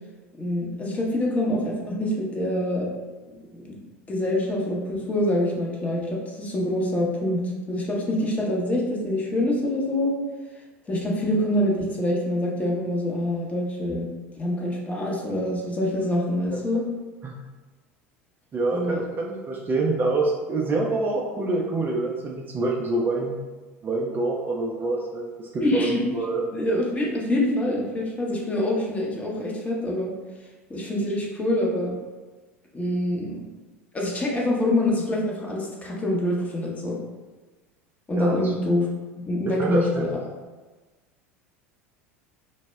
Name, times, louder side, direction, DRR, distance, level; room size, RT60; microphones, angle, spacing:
voice 1, 0.4-2.9 3.5-3.8 4.1-10.1 10.9-14.1 14.4-16.8 18.7-19.0 25.6-26.0 26.5-30.1 30.7-31.9 32.7-33.4 33.9-37.0 38.1-38.9 39.3-40.2, left 1 dB, 20° left, -2 dB, 0.6 m, -25 dB
voice 2, 18.5-23.4 23.8-26.4 38.1-38.4 39.5-40.1, right 2 dB, 25° right, -2 dB, 0.4 m, -26 dB
2.0 x 2.0 x 3.2 m, 1.3 s
figure-of-eight pair, 75°, 7 cm